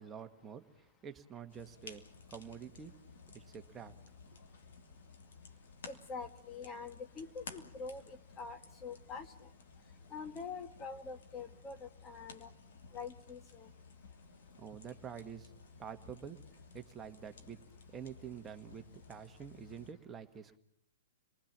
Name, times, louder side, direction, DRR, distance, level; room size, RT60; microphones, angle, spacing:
voice 1, 0.0-2.9 3.3-3.9 14.6-15.5 15.8-16.4 16.7-17.6 17.9-20.6, right 7 dB, 20° right, 7 dB, 1.5 m, -48 dB
sound 1, 1.5-19.9, left 4 dB, 70° left, 2.9 m, -55 dB
voice 2, 5.9-9.3 10.1-12.5 12.9-13.7, left 4 dB, 20° left, 8 dB, 1.4 m, -45 dB
29.5 x 20.5 x 7.3 m, 0.73 s
hypercardioid pair, 125°, 0 cm